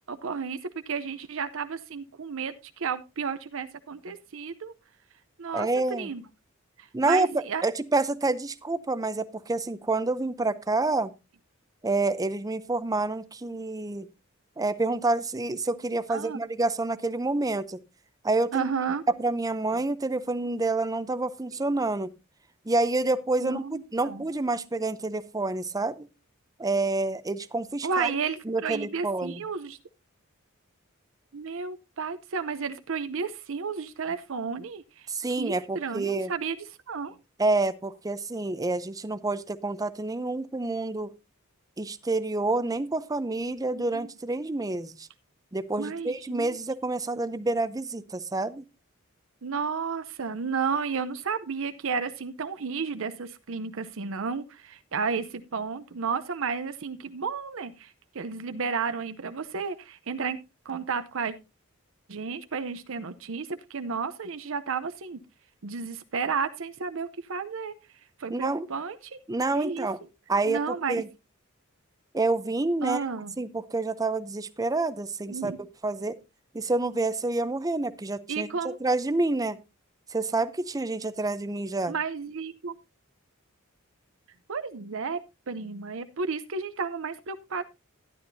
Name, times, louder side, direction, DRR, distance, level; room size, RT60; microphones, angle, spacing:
voice 1, 0.1-4.7 5.4-6.2 6.8-7.6 10.8-11.0 16.1-16.4 18.5-19.0 23.4-24.2 27.8-29.8 31.3-35.1 35.3-36.6 36.9-37.2 43.7-44.1 45.8-46.6 49.4-60.4 60.6-61.3 62.1-65.2 65.6-67.7 68.2-69.2 69.5-69.9 70.5-71.0 72.8-73.4 75.3-75.6 78.3-78.8 81.9-82.8 84.5-87.6, right 5 dB, 65° right, 0.7 m, -32 dB
voice 2, 5.5-6.1 6.9-11.1 11.8-14.1 14.6-17.8 18.2-18.7 19.1-22.1 22.7-26.1 26.6-28.1 28.5-29.4 35.1-36.3 37.4-41.1 41.8-45.1 45.5-48.6 68.3-68.7 69.3-70.0 70.3-70.6 70.9-71.1 72.1-73.0 73.4-75.5 75.8-76.2 76.5-79.6 80.1-81.9, right 2 dB, 15° right, 0.6 m, -28 dB
12.5 x 11.0 x 2.7 m
head